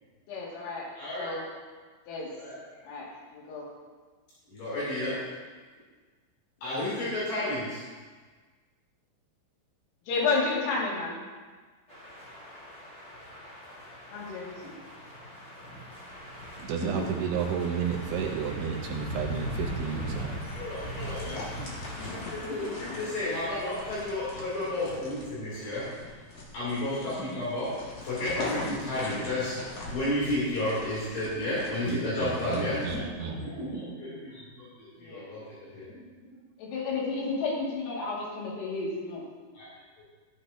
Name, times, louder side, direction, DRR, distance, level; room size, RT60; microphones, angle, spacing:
voice 1, 0.3-1.4 2.1-2.3 2.8-3.7 6.6-7.0 10.1-11.3 14.1-14.8 21.2-21.8 22.4-22.8 23.2-23.4 35.0-35.3 36.6-39.2, left 4 dB, 85° left, -5 dB, 4.9 m, -32 dB
voice 2, 1.0-1.3 2.4-2.6 4.5-5.2 6.6-7.8 16.6-17.0 20.6-21.4 22.3-25.8 26.5-27.7 28.0-36.0 39.6-39.7, left 1 dB, 70° left, -9 dB, 5.3 m, -32 dB
sound 1, 11.9-24.3, equal, 25° left, 1.9 m, -40 dB
voice 3, 16.6-20.4 31.9-33.4, right 7 dB, 80° right, 1 dB, 2.4 m, -32 dB
sound 2, 21.0-33.0, left 2 dB, 50° left, 2.0 m, -42 dB
14.0 x 10.0 x 2.8 m, 1.4 s
omnidirectional pair, 5.8 m